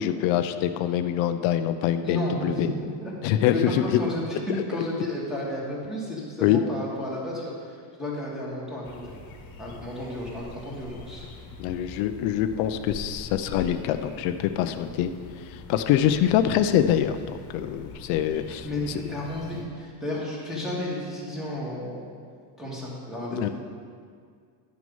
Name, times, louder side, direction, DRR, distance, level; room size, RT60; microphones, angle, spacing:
voice 1, 0.0-2.7 3.2-3.8 6.4-6.6 11.6-15.1 15.5-19.0 23.3-23.5, left 10 dB, 90° left, 9 dB, 0.6 m, -24 dB
voice 2, 2.0-2.5 3.0-3.1 3.5-9.1 9.6-11.3 18.6-22.1 22.6-23.5, left 1 dB, ahead, -6 dB, 2.1 m, -32 dB
sound 1, 8.8-19.6, left 3 dB, 50° left, 1.4 m, -43 dB
10.0 x 6.2 x 5.5 m, 2.1 s
cardioid pair, 145°, 45 cm